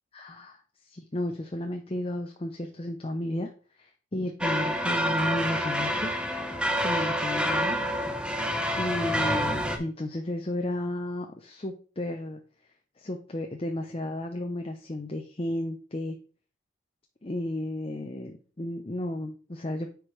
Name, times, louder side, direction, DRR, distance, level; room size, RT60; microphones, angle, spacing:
voice 1, 0.1-3.5 3.8-6.1 6.8-7.8 8.8-12.4 13.0-16.2 17.2-19.9, left 1 dB, 30° left, 3 dB, 0.6 m, -33 dB
sound 1, 4.4-9.8, equal, 5° right, 0.7 m, -27 dB
9.7 x 4.8 x 3.3 m, 0.39 s
head